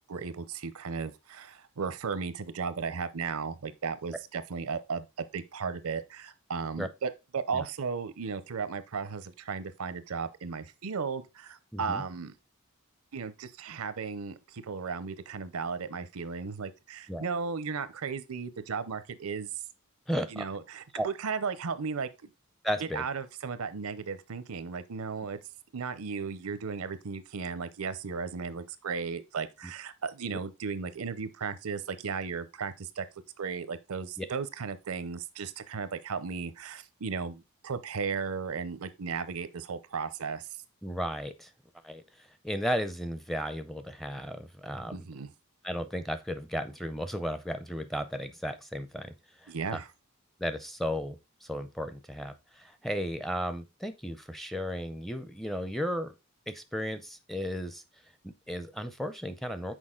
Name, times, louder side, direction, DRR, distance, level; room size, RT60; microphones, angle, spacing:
voice 1, 0.1-12.3 13.1-19.5 20.3-22.3 22.8-25.4 25.7-33.0 33.4-40.5 44.9-45.3 49.5-49.9, right 5 dB, 80° right, 0.6 m, -35 dB
voice 2, 11.7-12.0 17.1-17.2 20.1-20.4 20.9-21.1 22.6-23.0 34.2-34.3 40.8-41.5 41.8-45.0 45.6-49.1 49.4-49.8 50.4-51.2 51.4-56.1 56.5-57.8 58.2-59.7, equal, ahead, 0.5 m, -34 dB
6.3 x 4.6 x 3.7 m
head